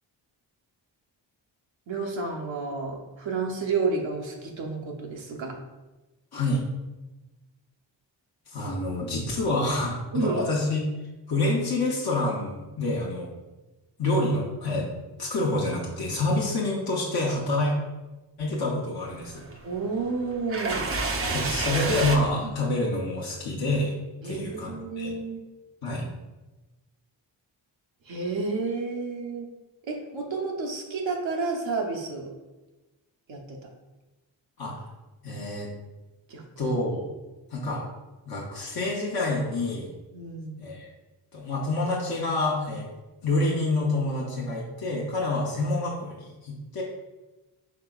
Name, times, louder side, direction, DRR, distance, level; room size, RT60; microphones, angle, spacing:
voice 1, 1.9-5.6 10.1-10.4 19.6-20.9 24.2-25.4 28.0-29.5 29.8-32.3 33.3-33.7 36.3-36.7 40.1-40.6, right 4 dB, 80° right, 1 dB, 0.8 m, -31 dB
voice 2, 6.3-6.6 8.5-10.8 11.3-13.3 14.0-14.8 15.2-17.7 18.4-19.4 21.3-24.0 24.2-25.1 25.8-26.1 34.6-34.8 35.2-35.7 36.6-37.0 37.5-37.8 38.3-39.9 40.6-40.9 41.3-42.9 43.2-46.8, left 2 dB, 55° left, -3 dB, 0.8 m, -27 dB
sound 1, 19.1-22.2, right 3 dB, 30° right, 0.5 m, -30 dB
4.7 x 3.7 x 2.3 m, 1.1 s
cardioid pair, 75°, 45 cm